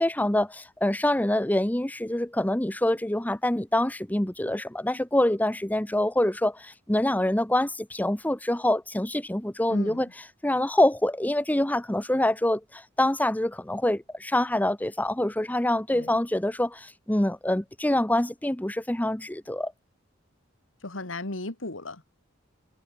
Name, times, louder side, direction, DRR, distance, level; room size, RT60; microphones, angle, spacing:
voice 1, 0.0-10.1 10.4-19.7, left 1 dB, 10° left, 0.9 m, -25 dB
voice 2, 9.7-10.1 15.9-16.2 20.8-22.0, left 2 dB, 80° left, 2.7 m, -36 dB
head